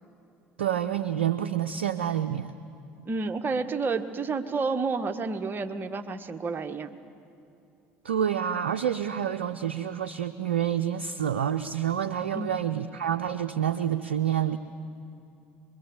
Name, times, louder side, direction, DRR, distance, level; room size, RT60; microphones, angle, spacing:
voice 1, 0.6-2.5 8.0-14.6, right 9 dB, 85° right, 9 dB, 0.5 m, -28 dB
voice 2, 3.1-6.9 12.3-12.5, right 4 dB, 35° right, 7 dB, 1.4 m, -30 dB
24.5 x 23.0 x 7.1 m, 2.7 s
hypercardioid pair, 65°, 6 cm